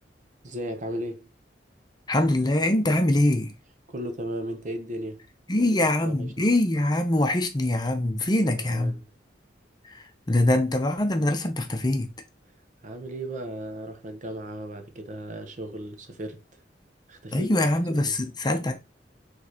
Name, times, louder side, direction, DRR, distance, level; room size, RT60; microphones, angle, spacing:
voice 1, 0.4-1.3 3.9-5.2 5.6-6.5 8.4-9.0 12.8-16.4 17.1-18.1, right 1 dB, 45° right, 0.8 m, -36 dB
voice 2, 2.1-3.5 5.5-9.0 9.8-12.1 17.3-18.7, left 1 dB, 25° left, 0.7 m, -23 dB
4.6 x 3.3 x 2.9 m
head